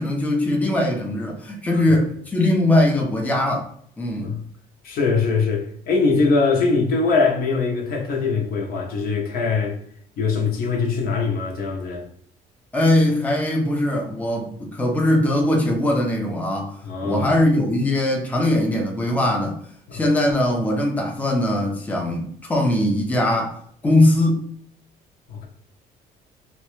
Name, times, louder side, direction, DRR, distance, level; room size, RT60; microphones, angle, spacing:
voice 1, 0.0-3.7 4.0-4.3 12.7-16.7 17.0-19.6 19.9-23.6 23.8-24.5, left 1 dB, 10° left, 0.6 m, -20 dB
voice 2, 4.8-9.8 10.2-12.0 16.8-17.3 19.9-20.0 25.3-25.5, left 4 dB, 60° left, 0.9 m, -22 dB
3.0 x 2.3 x 3.1 m
cardioid pair, 110°, 17 cm